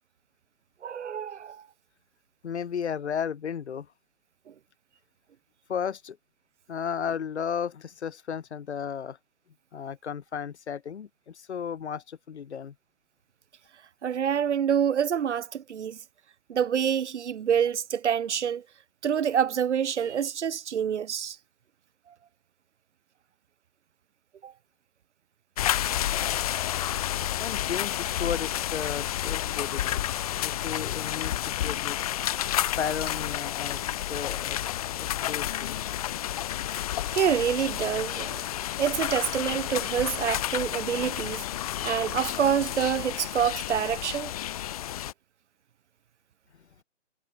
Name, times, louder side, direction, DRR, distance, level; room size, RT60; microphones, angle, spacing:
voice 1, 0.8-1.6 14.0-16.0 16.5-18.6 19.0-21.4 24.4-24.5 26.2-26.3 37.1-38.4 38.8-41.4 41.8-44.3, right 8 dB, 65° right, 0.9 m, -27 dB
voice 2, 2.4-3.9 5.7-6.2 6.7-9.2 9.7-12.7 27.4-30.0 30.4-32.0 32.8-34.6 34.9-36.0, left 7 dB, 60° left, 3.0 m, -34 dB
sound 1, 25.6-45.1, left 12 dB, 30° left, 1.2 m, -30 dB
hypercardioid pair, 155°, 38 cm